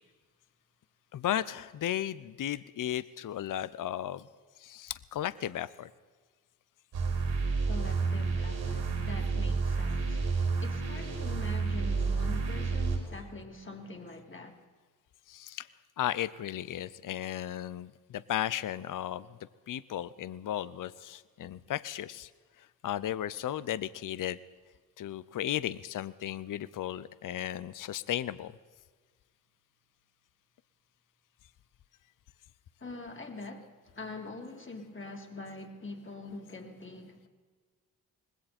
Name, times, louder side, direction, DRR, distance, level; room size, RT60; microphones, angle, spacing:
voice 1, 1.1-4.3 4.6-5.9 15.3-15.7 16.0-19.4 19.7-22.3 22.6-24.4 25.0-28.5, left 11 dB, 55° left, 0.7 m, -35 dB
sound 1, 6.9-13.0, right 4 dB, 85° right, 4.8 m, -30 dB
voice 2, 7.7-14.5 32.8-37.3, left 3 dB, 30° left, 3.0 m, -44 dB
20.0 x 16.5 x 4.3 m
supercardioid pair, 55°, 38 cm